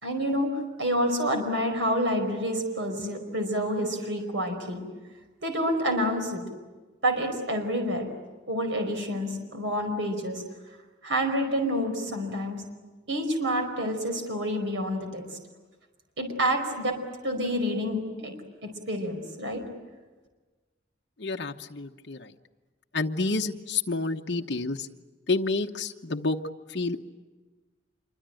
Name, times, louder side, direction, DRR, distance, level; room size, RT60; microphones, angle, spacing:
voice 1, 0.0-4.8 5.4-6.4 7.0-8.1 8.5-10.4 11.0-12.6 13.1-15.4 16.2-18.3 18.6-19.6, equal, 75° right, 5 dB, 5.0 m, -28 dB
voice 2, 21.2-22.3 22.9-24.9 25.3-26.4 26.7-27.0, left 3 dB, 65° left, 2 dB, 1.0 m, -29 dB
27.0 x 24.0 x 9.0 m, 1.3 s
head